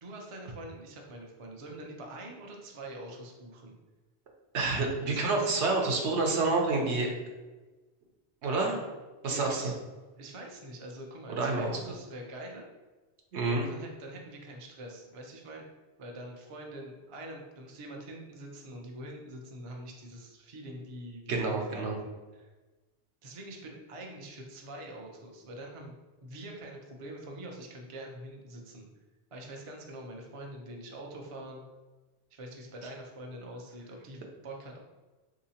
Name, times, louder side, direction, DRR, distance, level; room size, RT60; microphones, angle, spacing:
voice 1, 0.0-3.8 5.0-5.7 8.4-8.6 9.2-9.7 10.2-12.7 13.6-15.7 16.0-22.5 23.2-25.9 26.2-28.9 29.3-31.6 32.3-34.8, right 1 dB, 40° right, 1 dB, 0.5 m, -44 dB
voice 2, 4.5-7.1 8.4-8.7 9.2-9.7 11.3-11.7 13.3-13.7 21.3-22.0, right 3 dB, 75° right, 1 dB, 1.0 m, -28 dB
3.8 x 2.8 x 2.8 m, 1.2 s
omnidirectional pair, 1.1 m